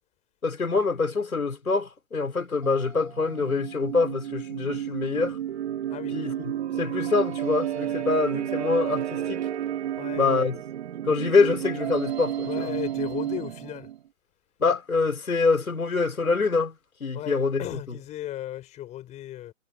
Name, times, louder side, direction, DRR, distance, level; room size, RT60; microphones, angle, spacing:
voice 1, 0.4-5.4 6.1-9.4 10.1-10.6 11.0-12.7 14.6-16.8 17.0-18.0, left 4 dB, 85° left, 5.3 m, -25 dB
sound 1, 2.6-14.0, right 11 dB, 45° right, 3.2 m, -31 dB
voice 2, 10.0-10.5 12.5-13.9 17.1-19.5, left 13 dB, 15° left, 4.7 m, -36 dB
hypercardioid pair, 140°, 42 cm